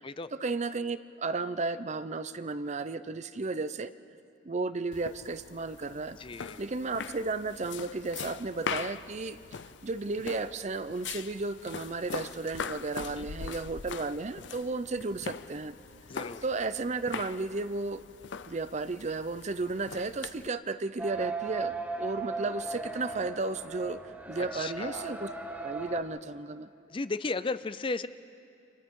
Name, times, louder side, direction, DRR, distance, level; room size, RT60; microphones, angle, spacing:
voice 1, 0.3-3.9 4.4-6.2 6.6-9.4 9.8-15.7 16.4-18.0 18.5-24.0 24.3-25.3 25.6-26.7, right 3 dB, 40° right, 13 dB, 0.6 m, -33 dB
sound 1, 4.9-20.5, left 6 dB, 75° left, 0.6 m, -42 dB
voice 2, 6.1-6.6 13.0-13.3 16.1-16.4 24.4-25.1 26.9-28.1, left 3 dB, 30° left, 14 dB, 0.5 m, -35 dB
sound 2, 21.0-26.0, right 3 dB, 10° right, 1.2 m, -37 dB
30.0 x 27.0 x 3.8 m, 2.7 s
head